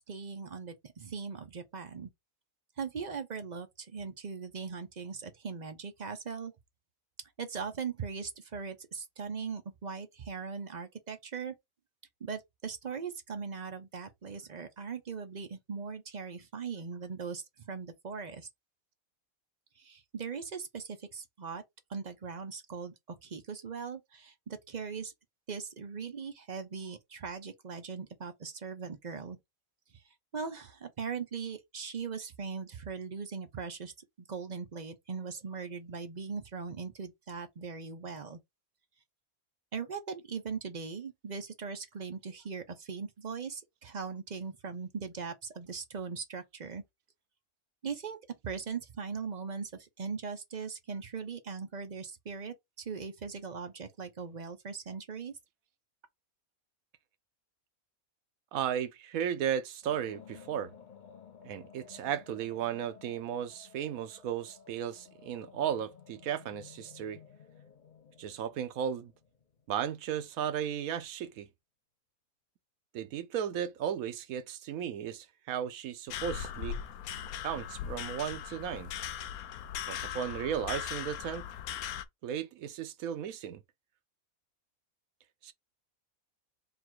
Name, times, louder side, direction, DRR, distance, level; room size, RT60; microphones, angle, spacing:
voice 1, 0.0-2.1 2.8-6.5 7.4-11.5 12.2-18.5 19.8-21.6 21.9-25.1 25.5-29.4 30.3-33.9 34.3-38.4 39.7-46.8 47.8-55.3, right 5 dB, 40° right, 0.6 m, -40 dB
voice 2, 58.5-60.7 61.4-67.2 68.2-69.1 69.7-71.5 72.9-76.8 77.4-78.9 79.9-81.5 82.2-83.6 85.4-85.5, right 9 dB, 80° right, 1.1 m, -35 dB
sound 1, 59.8-70.0, left 7 dB, 50° left, 0.6 m, -55 dB
sound 2, 76.1-82.0, left 9 dB, 90° left, 1.1 m, -39 dB
3.8 x 2.4 x 4.4 m
omnidirectional pair, 1.5 m